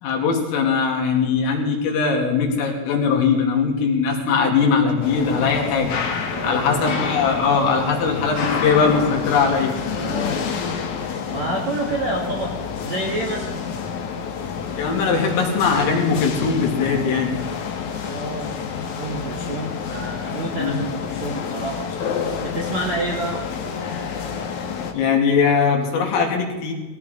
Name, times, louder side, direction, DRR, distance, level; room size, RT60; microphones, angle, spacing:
voice 1, 0.0-6.0 6.4-9.7 14.8-17.4 20.5-20.8 24.9-26.7, left 5 dB, 80° left, 0 dB, 5.3 m, -20 dB
sound 1, 5.0-24.9, left 6 dB, 65° left, 1.9 m, -28 dB
voice 2, 6.3-6.8 9.9-10.5 11.3-12.6 12.8-13.6 18.0-18.6 19.0-21.9 22.4-23.4, right 2 dB, 60° right, -1 dB, 1.9 m, -28 dB
22.0 x 16.5 x 3.9 m, 1.2 s
omnidirectional pair, 5.8 m